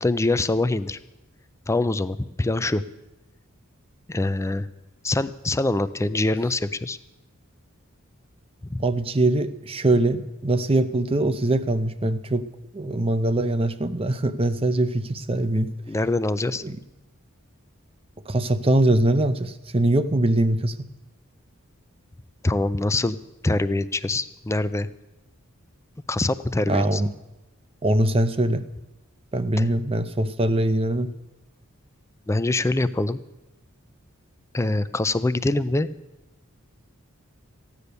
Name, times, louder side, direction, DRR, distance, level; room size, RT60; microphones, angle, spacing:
voice 1, 0.0-1.0 1.7-2.8 4.1-4.7 5.0-7.0 8.7-8.8 15.9-16.6 22.4-23.2 23.4-24.9 26.1-27.0 29.6-29.7 32.3-33.2 34.5-35.9, left 2 dB, 15° left, 14 dB, 0.4 m, -24 dB
voice 2, 8.8-12.5 12.7-15.7 16.6-16.8 18.3-20.9 26.7-27.1 27.8-28.7 29.3-31.1, right 1 dB, 25° right, 12 dB, 0.6 m, -22 dB
15.0 x 9.9 x 6.8 m, 0.98 s
head